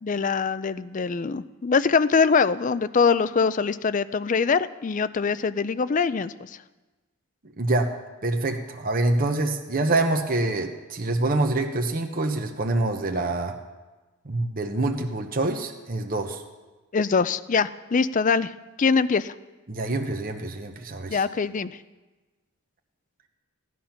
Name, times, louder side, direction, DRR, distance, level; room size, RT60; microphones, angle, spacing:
voice 1, 0.0-6.5 16.9-18.5 18.8-19.3 21.1-21.7, left 5 dB, 35° left, 15 dB, 0.4 m, -23 dB
voice 2, 7.6-7.9 8.2-13.6 14.2-16.4 19.7-21.2, right 2 dB, 40° right, 4 dB, 1.0 m, -26 dB
16.5 x 11.0 x 5.9 m, 1.2 s
head